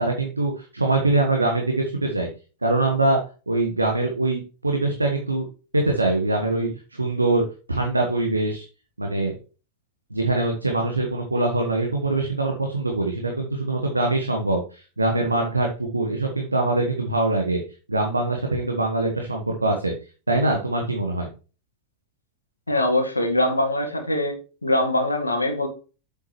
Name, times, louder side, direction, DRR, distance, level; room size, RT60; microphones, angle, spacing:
voice 1, 0.0-2.3 2.6-3.2 3.5-5.5 5.7-8.6 9.0-9.3 10.1-17.6 17.9-19.9 20.3-21.3, right 2 dB, 80° right, 2 dB, 1.3 m, -23 dB
voice 2, 22.7-24.3 24.6-25.7, left 1 dB, 80° left, 5 dB, 1.9 m, -22 dB
7.9 x 7.2 x 3.0 m, 0.34 s
figure-of-eight pair, 90°, 0 cm